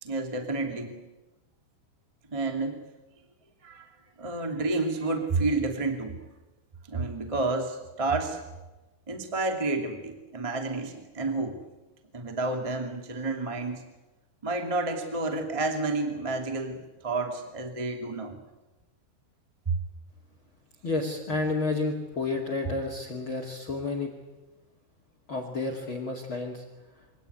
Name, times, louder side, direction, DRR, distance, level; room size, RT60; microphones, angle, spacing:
voice 1, 0.0-1.0 2.3-2.8 3.6-3.9 4.2-6.2 6.9-8.4 9.1-11.6 12.1-13.8 14.4-18.4 19.6-19.8, right 3 dB, 15° right, 4 dB, 1.3 m, -30 dB
voice 2, 20.8-24.1 25.3-26.6, left 3 dB, 35° left, 4 dB, 2.4 m, -30 dB
24.5 x 18.0 x 9.5 m, 1.1 s
omnidirectional pair, 5.3 m